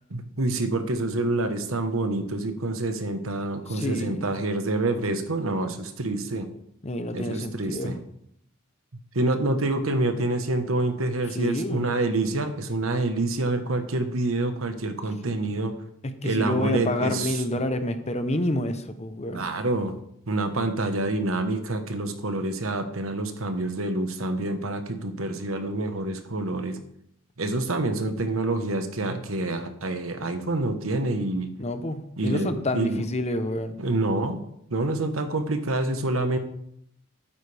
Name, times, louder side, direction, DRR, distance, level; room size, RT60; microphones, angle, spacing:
voice 1, 0.1-6.5 7.1-8.0 9.1-15.7 16.2-17.4 19.3-19.9 20.3-26.8 27.4-31.5 32.2-33.0 33.8-34.4 34.7-36.4, right 2 dB, 90° right, 7 dB, 1.3 m, -27 dB
voice 2, 3.7-4.2 6.8-7.9 11.3-11.9 15.2-15.3 16.0-19.4 31.6-33.8, left 1 dB, 35° left, 9 dB, 0.8 m, -28 dB
12.5 x 9.1 x 3.5 m, 0.72 s
head